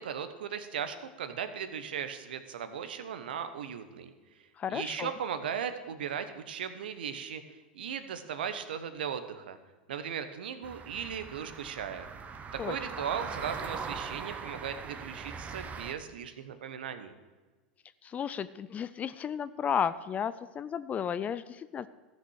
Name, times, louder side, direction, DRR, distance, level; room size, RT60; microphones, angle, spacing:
voice 1, 0.0-4.1 4.7-9.6 9.9-12.1 12.5-17.1, right 8 dB, 75° right, 10 dB, 1.1 m, -37 dB
voice 2, 4.6-5.1 12.6-12.8 18.0-21.9, left 8 dB, 30° left, 15 dB, 0.4 m, -33 dB
sound 1, 10.6-15.9, right 5 dB, 30° right, 1.0 m, -41 dB
14.0 x 6.5 x 6.5 m, 1.3 s
hypercardioid pair, 95°, 5 cm